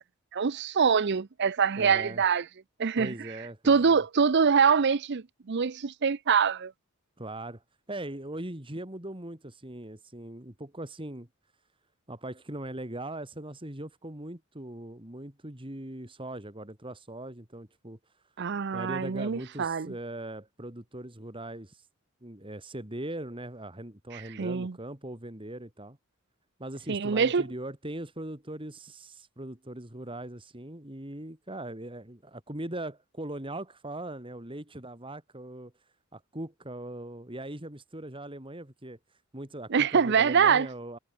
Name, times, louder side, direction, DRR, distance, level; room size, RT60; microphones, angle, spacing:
voice 1, 0.3-2.4 2.8-3.1 3.7-6.7 18.4-19.9 24.1-24.8 26.9-27.4 39.7-40.7, right 6 dB, 50° right, 0.6 m, -24 dB
voice 2, 1.8-2.2 3.0-4.0 7.2-11.3 12.1-18.0 18.7-21.9 22.2-26.0 26.6-35.7 36.1-39.0 39.3-41.0, right 1 dB, 25° right, 2.8 m, -40 dB
head